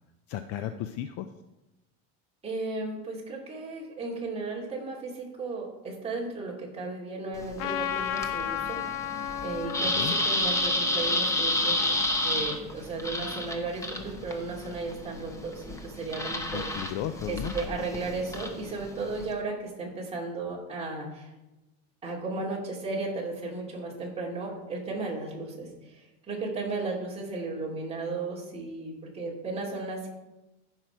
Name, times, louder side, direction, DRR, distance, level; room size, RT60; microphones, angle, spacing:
voice 1, 0.3-1.3 9.8-10.2 16.5-17.5, left 11 dB, 40° left, 10 dB, 0.4 m, -34 dB
voice 2, 2.4-9.1 9.4-11.9 12.2-16.8 17.3-21.3 22.0-30.1, right 3 dB, 15° right, -4 dB, 2.6 m, -35 dB
sound 1, 7.3-19.3, left 1 dB, 10° left, 0.8 m, -31 dB
Trumpet, 7.6-12.2, left 10 dB, 80° left, 0.8 m, -35 dB
14.5 x 5.7 x 4.5 m, 1.0 s
cardioid pair, 155°, 38 cm